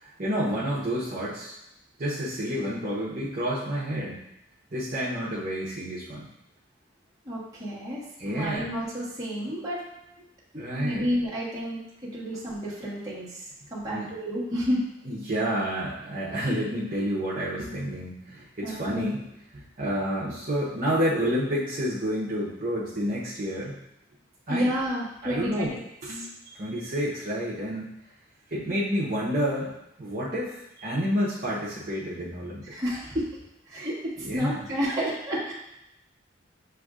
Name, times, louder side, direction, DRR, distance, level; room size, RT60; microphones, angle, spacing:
voice 1, 0.0-1.5 2.0-4.2 4.7-6.3 8.2-8.7 10.5-11.1 13.9-14.1 15.1-19.2 19.5-23.8 24.5-24.7 25.2-25.8 26.0-26.3 26.6-27.9 28.5-29.7 30.0-32.6 34.2-34.6, equal, 45° right, -8 dB, 0.8 m, -29 dB
voice 2, 7.2-9.8 10.2-10.3 10.5-14.8 18.6-19.1 24.5-25.7 26.2-26.6 32.7-33.3 33.7-35.5, equal, 20° right, -8 dB, 1.4 m, -31 dB
7.6 x 2.6 x 2.4 m, 0.84 s
head